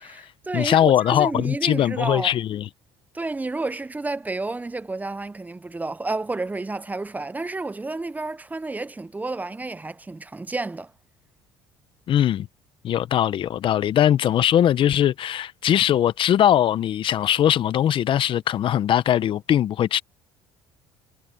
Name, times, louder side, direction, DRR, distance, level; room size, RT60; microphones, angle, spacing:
voice 1, 0.0-2.3 3.1-10.9, right 3 dB, 15° right, 1.0 m, -30 dB
voice 2, 0.5-2.7 12.1-12.5 12.8-20.0, left 10 dB, 55° left, 1.1 m, -20 dB
supercardioid pair, 75°, 11 cm